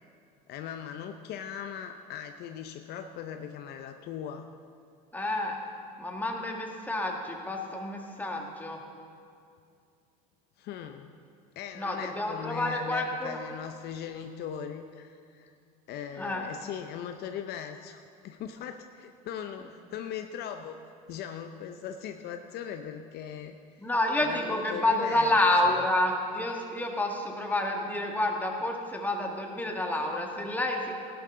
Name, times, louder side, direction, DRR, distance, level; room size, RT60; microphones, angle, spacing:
voice 1, 0.5-4.5 10.6-11.1 11.6-15.5 15.9-20.8 21.1-23.6 24.2-25.4 25.6-25.8, left 8 dB, 55° left, 7 dB, 0.6 m, -39 dB
voice 2, 5.1-5.6 6.0-8.8 11.8-13.4 16.2-16.5 23.8-31.0, left 1 dB, 10° left, 1 dB, 1.8 m, -29 dB
15.5 x 11.5 x 3.8 m, 2.4 s
supercardioid pair, 100°, 20 cm